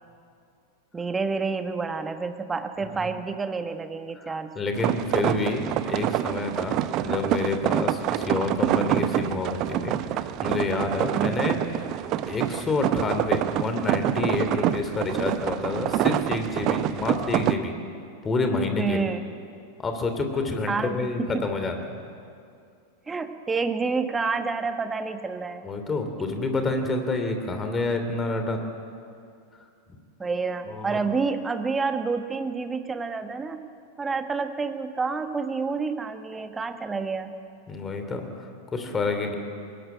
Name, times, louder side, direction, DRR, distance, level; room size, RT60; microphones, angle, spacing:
voice 1, 0.9-4.6 11.1-11.5 18.8-19.2 20.7-21.0 21.3-21.5 23.1-25.7 30.2-33.7 34.0-37.3, right 4 dB, 15° right, 8 dB, 1.4 m, -29 dB
voice 2, 4.2-6.8 7.0-11.8 12.3-17.7 18.2-19.0 19.8-22.0 25.6-28.6 30.7-31.0 37.7-39.4, left 3 dB, 20° left, 6 dB, 2.9 m, -28 dB
sound 1, 4.7-17.6, right 12 dB, 40° right, 0.7 m, -26 dB
21.5 x 19.0 x 9.1 m, 2.4 s
figure-of-eight pair, 90°, 0 cm